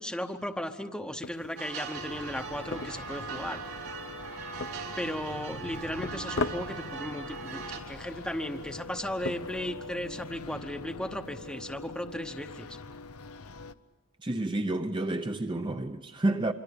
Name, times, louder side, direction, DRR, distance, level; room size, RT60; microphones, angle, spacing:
voice 1, 0.0-3.6 5.0-12.8, equal, 5° left, 0.9 m, -36 dB
sound 1, 1.2-10.6, left 3 dB, 60° left, 1.0 m, -42 dB
sound 2, 1.6-7.8, right 6 dB, 90° right, 4.0 m, -40 dB
sound 3, 1.9-13.7, left 3 dB, 85° left, 0.8 m, -43 dB
voice 2, 14.2-16.5, right 2 dB, 20° right, 0.7 m, -30 dB
25.5 x 25.0 x 7.0 m
head